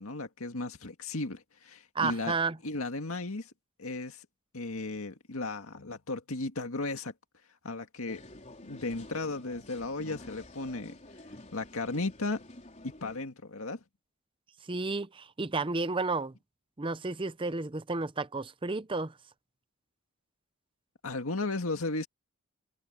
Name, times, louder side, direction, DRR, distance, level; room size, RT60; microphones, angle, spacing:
voice 1, 0.0-2.4 2.6-3.5 3.8-4.3 4.5-7.1 7.6-8.2 8.6-11.0 11.5-12.4 12.8-13.8 21.0-22.1, left 2 dB, 70° left, 2.0 m, -35 dB
voice 2, 1.9-2.6 14.7-16.3 16.8-19.1, right 3 dB, 20° right, 0.6 m, -32 dB
sound 1, 8.1-13.2, left 1 dB, 30° left, 4.1 m, -50 dB
head